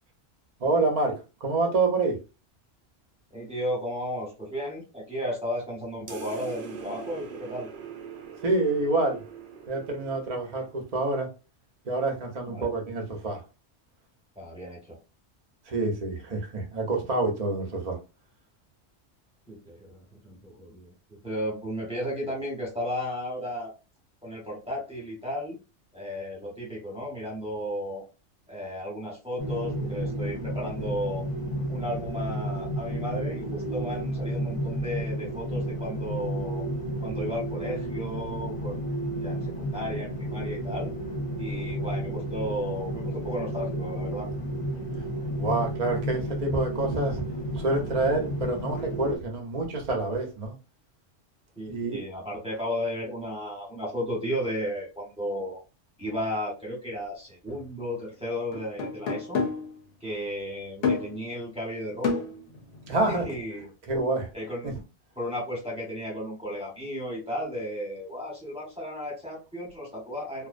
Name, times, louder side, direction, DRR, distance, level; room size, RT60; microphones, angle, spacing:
voice 1, 0.6-1.1 1.4-2.2 8.4-9.2 9.7-11.3 11.9-13.4 15.7-18.0 45.4-47.2 47.5-50.5 51.7-52.0 62.9-63.3 63.9-64.3, right 2 dB, 40° right, 0.6 m, -27 dB
voice 2, 3.3-7.7 12.4-12.7 14.3-15.0 19.5-23.7 24.2-25.6 25.9-28.0 28.5-31.3 31.7-36.7 37.0-38.8 39.2-40.9 41.4-44.3 51.6-55.6 56.0-59.4 60.0-62.2 62.9-63.7 64.3-64.7 65.2-70.5, equal, 5° right, 1.0 m, -34 dB
sound 1, 6.1-11.0, right 6 dB, 75° right, 0.9 m, -42 dB
sound 2, 29.4-49.2, right 1 dB, 35° left, 0.7 m, -32 dB
sound 3, 57.5-57.6 58.5-59.7 60.8-61.2 62.0-63.3, left 4 dB, 75° left, 1.0 m, -30 dB
2.5 x 2.0 x 2.4 m
omnidirectional pair, 1.2 m